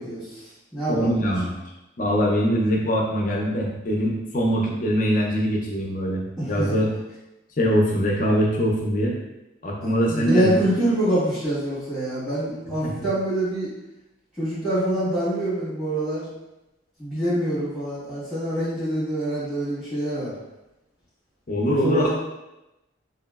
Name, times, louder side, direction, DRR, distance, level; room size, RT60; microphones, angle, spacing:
voice 1, 0.0-1.3 6.4-6.7 9.8-13.7 14.4-16.3 17.0-20.3 21.7-22.1, right 1 dB, ahead, -13 dB, 1.4 m, -25 dB
voice 2, 0.9-1.5 2.0-6.9 7.6-9.1 9.6-10.6 12.8-12.9 21.5-22.1, equal, 40° left, -1 dB, 0.5 m, -22 dB
3.0 x 2.6 x 2.3 m, 0.96 s
head